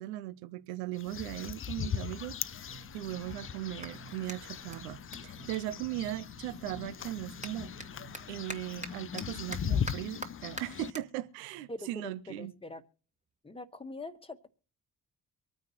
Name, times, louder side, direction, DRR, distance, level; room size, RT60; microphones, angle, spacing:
voice 1, 0.0-2.4 2.9-7.7 8.3-12.5, right 14 dB, 75° right, 0.7 m, -38 dB
sound 1, 0.9-10.9, left 8 dB, 25° left, 0.6 m, -39 dB
sound 2, 2.4-8.3, right 5 dB, 40° right, 3.3 m, -55 dB
Clapping, 3.8-6.5 6.8-13.4, right 1 dB, 15° right, 1.7 m, -47 dB
voice 2, 11.7-12.8 13.4-14.5, left 2 dB, 10° left, 1.4 m, -43 dB
24.5 x 9.3 x 3.0 m
figure-of-eight pair, 40°, 48 cm